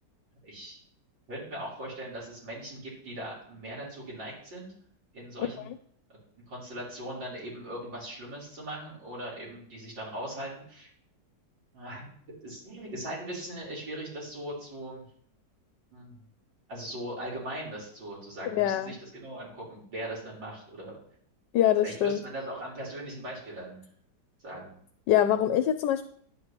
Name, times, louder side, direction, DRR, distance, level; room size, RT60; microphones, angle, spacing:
voice 1, 0.4-0.8 1.3-4.7 5.1-5.7 6.1-6.2 6.5-10.9 11.7-12.1 12.4-15.0 15.9-16.3 16.7-21.0 21.8-23.8 24.4-24.7, right 1 dB, 85° right, -6 dB, 4.5 m, -39 dB
voice 2, 18.4-18.9 21.5-22.2 25.1-26.0, left 11 dB, 75° left, 11 dB, 1.2 m, -24 dB
11.0 x 8.6 x 2.9 m, 0.64 s
omnidirectional pair, 1.9 m